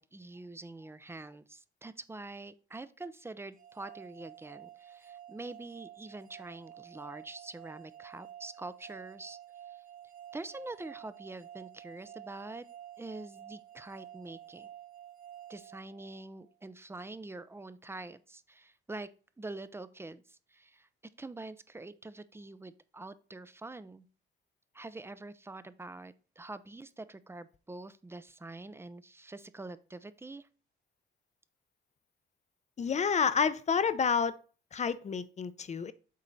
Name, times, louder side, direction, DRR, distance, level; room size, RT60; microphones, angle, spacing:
voice 1, 0.0-9.4 9.7-9.8 10.3-12.7 13.0-14.7 15.5-19.1 19.4-20.9 21.2-24.1 24.7-30.5, right 2 dB, 10° right, 0.5 m, -45 dB
sound 1, 3.6-16.5, right 11 dB, 45° right, 1.0 m, -51 dB
voice 2, 32.8-34.3 34.7-35.9, left 6 dB, 35° left, 0.6 m, -29 dB
7.5 x 4.4 x 4.0 m
cardioid pair, 90°, 20 cm